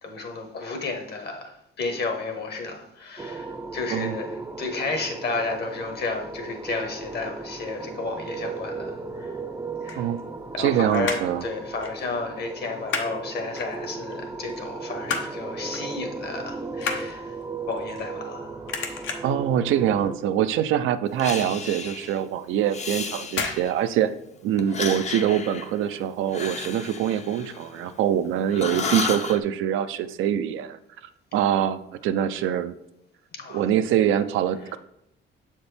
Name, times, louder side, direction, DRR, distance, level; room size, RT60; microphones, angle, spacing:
voice 1, 0.0-9.4 9.8-10.1 10.5-17.4 17.7-19.0 33.3-33.6 34.6-34.8, left 3 dB, 55° left, 1.3 m, -32 dB
sound 1, 3.2-20.2, right 3 dB, 15° right, 0.4 m, -36 dB
sound 2, 9.6-10.7 10.9-11.4 11.8-12.0 12.3-13.1 13.5-14.1 14.6-15.4 15.7-15.9 16.3-18.4 18.7-19.4 19.9-20.2 20.4-20.5 20.9-21.0 21.5-21.6 22.4-22.7 23.3-23.6 23.9-24.0, left 5 dB, 75° left, 0.9 m, -31 dB
voice 2, 10.6-11.4 19.2-24.1 24.4-30.8 31.3-32.7 33.5-34.8, right 10 dB, 85° right, 0.4 m, -24 dB
Breathing, 21.2-22.2 22.7-23.9 24.6-28.2 28.5-29.4, left 5 dB, 35° left, 0.6 m, -33 dB
6.9 x 4.3 x 3.4 m
cardioid pair, 90°, 20 cm